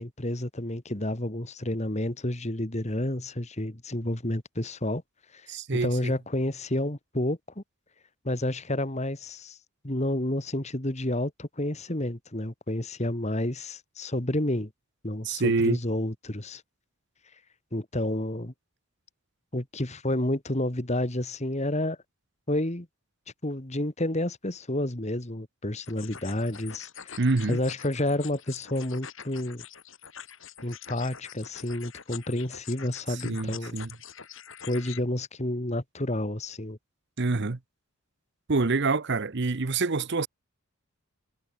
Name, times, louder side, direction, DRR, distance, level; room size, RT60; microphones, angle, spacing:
voice 1, 0.0-5.0 5.3-5.4 5.7-7.6 8.2-9.6 9.8-14.7 15.0-16.6 17.7-18.5 19.5-22.0 22.5-22.9 23.4-27.2 27.5-29.6 30.6-33.7 34.7-36.8, left 1 dB, 30° left, 2.1 m, -30 dB
voice 2, 5.5-6.1 15.2-15.8 27.2-27.6 33.2-33.9 37.2-37.6 38.5-40.3, right 3 dB, 55° right, 0.8 m, -26 dB
sound 1, 25.8-35.0, left 8 dB, 60° left, 4.0 m, -45 dB
head